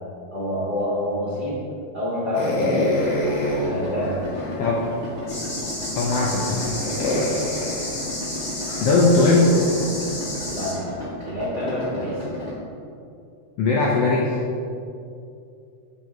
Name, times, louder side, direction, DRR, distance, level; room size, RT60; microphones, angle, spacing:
voice 1, 0.3-1.6 1.9-2.8 3.6-4.3 6.4-6.5 10.5-12.2, left 1 dB, 90° right, -8 dB, 0.8 m, -27 dB
sound 1, 2.3-4.7 5.3-5.4 6.0-9.8, left 1 dB, 70° left, 1.5 m, -27 dB
Idling, 3.0-12.6, left 1 dB, 70° right, 0.3 m, -34 dB
voice 2, 4.6-4.9 6.0-6.8 8.8-9.5 13.6-14.4, left 3 dB, 85° left, -4 dB, 1.3 m, -19 dB
sound 2, 5.3-10.7, left 1 dB, 45° left, 1.6 m, -32 dB
7.6 x 2.8 x 4.6 m, 2.6 s
omnidirectional pair, 3.4 m